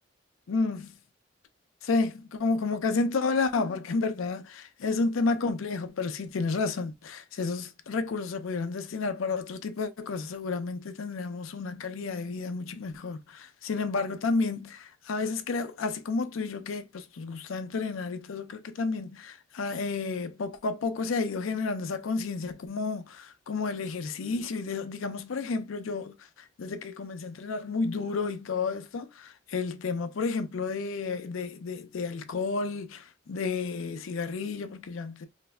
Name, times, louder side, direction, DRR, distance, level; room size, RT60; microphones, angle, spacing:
voice 1, 0.5-0.9 1.8-26.2 26.6-35.3, left 4 dB, 80° left, 0.5 m, -31 dB
3.1 x 2.6 x 2.3 m
head